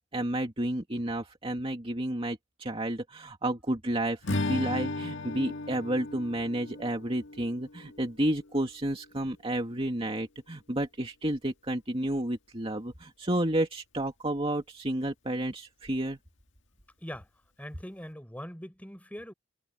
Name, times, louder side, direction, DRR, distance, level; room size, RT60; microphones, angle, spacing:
voice 1, 0.0-16.2, right 1 dB, 30° right, 2.4 m, -31 dB
Strum, 4.2-8.7, left 2 dB, 75° left, 1.9 m, -35 dB
voice 2, 17.6-19.3, equal, 10° left, 5.7 m, -42 dB
head